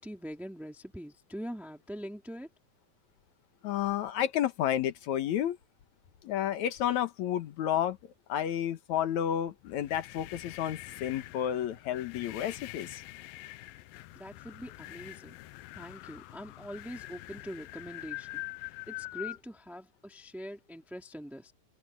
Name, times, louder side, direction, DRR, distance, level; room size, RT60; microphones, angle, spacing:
voice 1, 0.0-2.5 14.1-15.4 15.7-21.5, equal, ahead, 3.5 m, -43 dB
voice 2, 3.6-5.6 6.2-8.0 8.3-13.0, left 10 dB, 65° left, 2.2 m, -31 dB
sound 1, 9.6-19.4, left 18 dB, 90° left, 2.5 m, -45 dB
open air
omnidirectional pair, 4.1 m